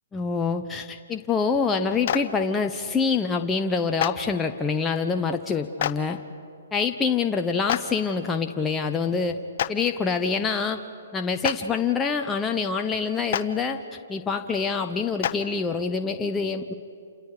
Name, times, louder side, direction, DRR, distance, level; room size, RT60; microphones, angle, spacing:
voice 1, 0.1-6.2 6.7-9.4 9.7-10.8 11.1-13.8 14.1-16.7, left 5 dB, 15° left, 5 dB, 0.8 m, -26 dB
Clapping, 2.0-2.2 4.0-4.1 5.8-5.9 7.7-7.8 9.6-9.7 11.4-11.5 13.3-13.4 15.2-15.3, left 11 dB, 50° left, 0.8 m, -24 dB
28.5 x 28.0 x 5.0 m, 2.4 s
hypercardioid pair, 130°, 0 cm